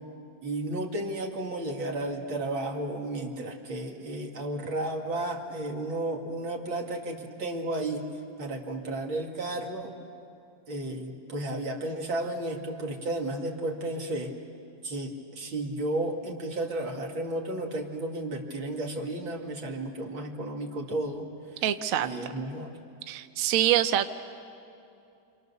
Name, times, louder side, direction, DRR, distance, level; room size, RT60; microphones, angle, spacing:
voice 1, 0.4-8.0 8.4-9.9 10.7-14.3 14.8-21.3 22.0-22.7, right 1 dB, 80° right, 1 dB, 2.9 m, -33 dB
voice 2, 21.6-22.1 23.1-24.1, right 11 dB, 60° right, 10 dB, 1.0 m, -25 dB
28.5 x 26.5 x 6.9 m, 2.7 s
omnidirectional pair, 2.1 m